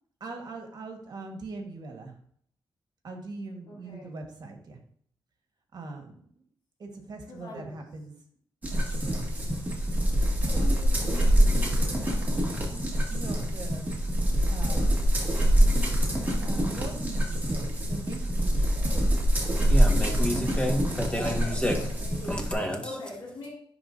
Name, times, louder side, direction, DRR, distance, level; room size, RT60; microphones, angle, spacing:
voice 1, 0.2-2.2 3.0-4.8 5.7-6.4 6.8-8.1 8.7-9.2 13.1-13.9 14.5-15.2 15.6-18.9 21.2-21.4, right 3 dB, 55° right, 3 dB, 1.4 m, -41 dB
voice 2, 3.7-4.1 7.3-7.7 10.5-12.6 20.1-20.4 21.2-22.3 22.8-23.5, left 2 dB, 75° left, -8 dB, 2.2 m, -42 dB
sound 1, 8.6-22.5, equal, 20° right, 1.9 m, -25 dB
voice 3, 19.7-23.0, equal, 10° left, 2 dB, 1.5 m, -30 dB
10.5 x 3.6 x 2.7 m, 0.62 s
cardioid pair, 90°, 8 cm